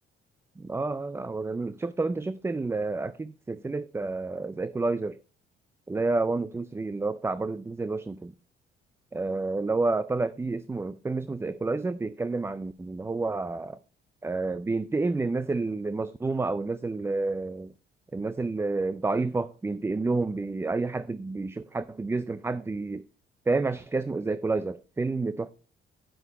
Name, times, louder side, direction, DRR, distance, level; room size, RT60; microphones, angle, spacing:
voice 1, 0.6-5.2 5.9-8.3 9.1-13.8 14.2-17.7 18.1-23.0 23.5-25.5, right 3 dB, 15° right, 0.4 m, -29 dB
10.0 x 5.5 x 4.8 m
cardioid pair, 90°, 20 cm